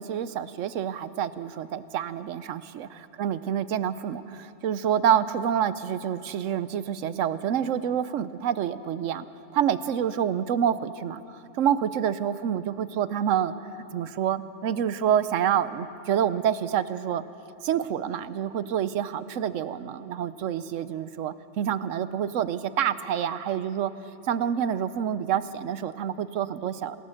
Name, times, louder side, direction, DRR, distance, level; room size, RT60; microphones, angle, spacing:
voice 1, 0.0-9.3 9.5-13.5 13.9-17.2 17.6-23.9 24.2-27.0, right 9 dB, 80° right, 14 dB, 1.1 m, -27 dB
27.5 x 17.0 x 6.5 m, 2.8 s
omnidirectional pair, 1.3 m